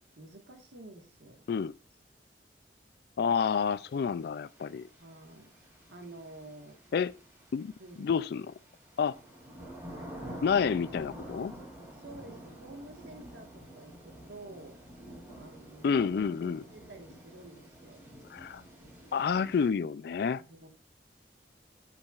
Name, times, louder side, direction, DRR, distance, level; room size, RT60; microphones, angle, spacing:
voice 1, 0.2-1.4 5.0-5.5 5.9-6.8 7.8-8.1 11.9-14.8 15.4-16.0 16.3-18.0 20.4-20.7, right 2 dB, 80° right, 1.6 m, -49 dB
voice 2, 3.2-4.9 6.9-7.1 7.5-7.7 8.0-8.5 9.0-9.2 10.4-11.5 15.8-16.6 18.3-18.6 19.1-20.4, left 6 dB, 60° left, 0.3 m, -29 dB
sound 1, 3.6-19.7, equal, 15° right, 3.0 m, -49 dB
7.9 x 5.8 x 2.4 m
head